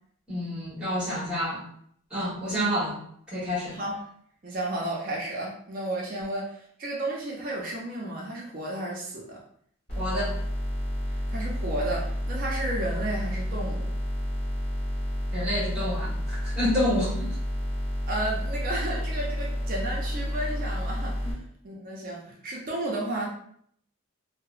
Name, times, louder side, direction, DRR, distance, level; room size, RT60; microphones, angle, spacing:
voice 1, 0.3-1.6 2.1-3.0 3.3-3.8 10.0-10.3 15.3-17.4 21.2-21.3, equal, 5° right, -8 dB, 1.1 m, -28 dB
voice 2, 4.4-9.4 11.3-13.9 18.1-21.3 21.6-23.3, right 1 dB, 40° right, -3 dB, 0.4 m, -32 dB
sound 1, 9.9-21.3, equal, 45° left, 1.0 m, -30 dB
2.8 x 2.0 x 2.3 m, 0.65 s
head